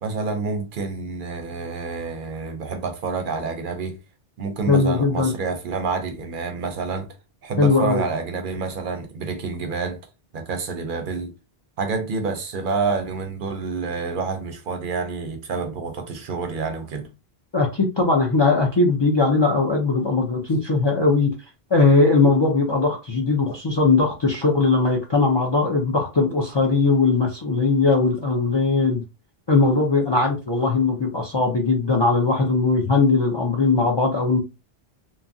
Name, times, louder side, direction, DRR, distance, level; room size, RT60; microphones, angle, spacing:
voice 1, 0.0-4.0 4.4-7.1 7.4-10.0 10.3-11.3 11.8-17.1, right 4 dB, 60° right, 0.6 m, -28 dB
voice 2, 4.7-5.3 7.6-8.0 17.5-21.3 21.7-29.0 29.5-34.4, left 3 dB, 45° left, 0.3 m, -19 dB
2.8 x 2.3 x 2.5 m
omnidirectional pair, 1.1 m